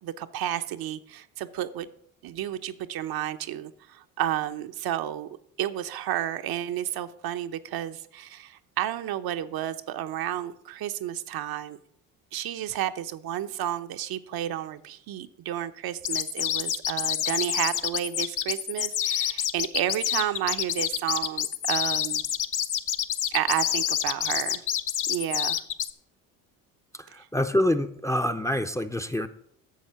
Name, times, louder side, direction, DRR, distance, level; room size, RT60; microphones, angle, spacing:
voice 1, 0.0-1.9 2.2-5.3 5.6-11.8 12.3-22.2 23.3-24.6 25.1-25.6 27.1-27.3, right 11 dB, 55° right, 9 dB, 0.8 m, -31 dB
sound 1, 16.0-25.9, left 10 dB, 45° left, 0.9 m, -27 dB
voice 2, 26.9-29.3, left 1 dB, 5° left, 12 dB, 0.6 m, -26 dB
11.5 x 7.2 x 5.7 m, 0.69 s
hypercardioid pair, 60°, 44 cm